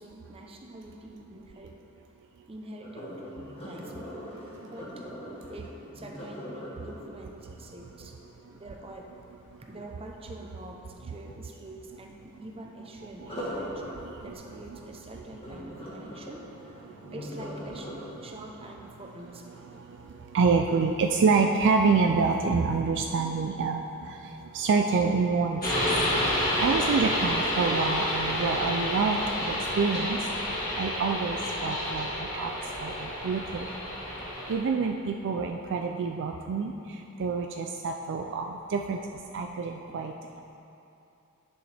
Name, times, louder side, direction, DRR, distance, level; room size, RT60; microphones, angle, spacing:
voice 1, 0.0-1.8 2.5-3.4 3.6-4.1 4.6-5.0 5.5-8.1 8.5-9.1 9.6-13.8 14.2-16.4 17.1-17.9 18.2-19.9, right 1 dB, 25° right, 1 dB, 0.7 m, -45 dB
Sink (filling or washing), 2.8-8.8 13.1-20.2 20.7-21.0 21.5-21.6, equal, 25° left, 1.4 m, -41 dB
voice 2, 20.3-24.2 24.5-25.6 26.3-30.2 30.5-33.7 34.5-36.7 37.2-39.0 39.3-40.1, right 4 dB, 55° right, 3 dB, 0.4 m, -27 dB
sound 1, 25.6-34.5, left 1 dB, 45° left, 1.8 m, -29 dB
10.5 x 6.3 x 3.4 m, 2.7 s
head